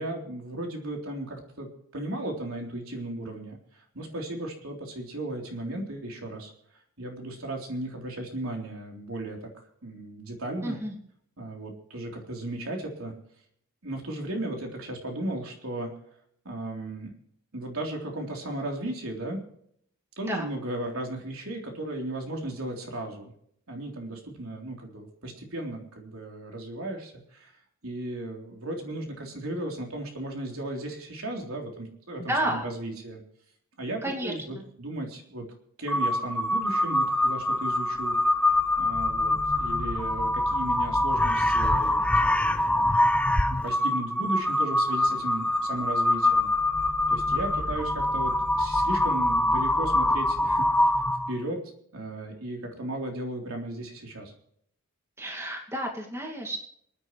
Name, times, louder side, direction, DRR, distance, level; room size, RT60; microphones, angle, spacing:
voice 1, 0.0-6.5 7.0-9.5 9.8-10.8 11.4-13.1 13.8-15.9 16.5-17.1 17.5-19.4 20.2-23.3 23.7-27.5 27.8-33.2 33.8-35.5 35.8-38.2 38.8-43.2 43.6-46.5 47.1-50.9 51.3-51.6 51.9-54.3, right 1 dB, 70° right, 1 dB, 3.6 m, -35 dB
voice 2, 10.6-11.0 20.3-20.5 32.3-32.7 34.0-34.6 55.2-56.6, right 1 dB, 10° right, 0 dB, 2.4 m, -31 dB
Crow, 35.9-51.4, left 1 dB, 5° left, 0.6 m, -24 dB
29.0 x 10.0 x 3.2 m, 0.67 s
head